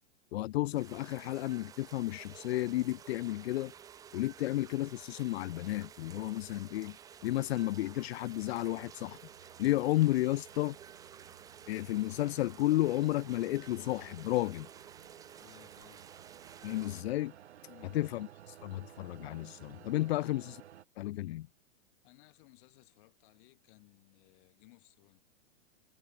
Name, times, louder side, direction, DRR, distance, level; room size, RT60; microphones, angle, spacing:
voice 1, 0.3-3.7 4.1-7.0 7.2-9.2 9.6-10.8 11.7-14.7 16.6-17.3 17.9-20.6 21.0-21.5, left 16 dB, 65° left, 0.5 m, -32 dB
sound 1, 0.7-17.0, right 8 dB, 10° right, 0.5 m, -53 dB
sound 2, 6.9-20.8, right 11 dB, 75° right, 3.1 m, -57 dB
voice 2, 15.4-16.1 17.7-18.0 22.0-25.2, left 25 dB, 50° left, 7.5 m, -61 dB
hypercardioid pair, 135°, 34 cm